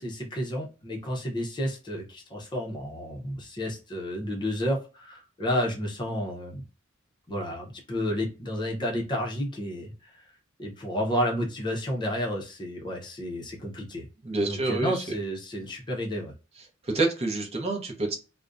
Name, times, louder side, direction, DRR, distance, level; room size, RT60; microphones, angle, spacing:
voice 1, 0.0-6.6 7.3-10.1 10.6-14.1 14.4-16.3, equal, 20° left, 0 dB, 0.6 m, -31 dB
voice 2, 14.2-15.0 16.6-18.1, right 2 dB, 30° right, 1 dB, 0.6 m, -28 dB
2.4 x 2.1 x 2.4 m, 0.32 s
head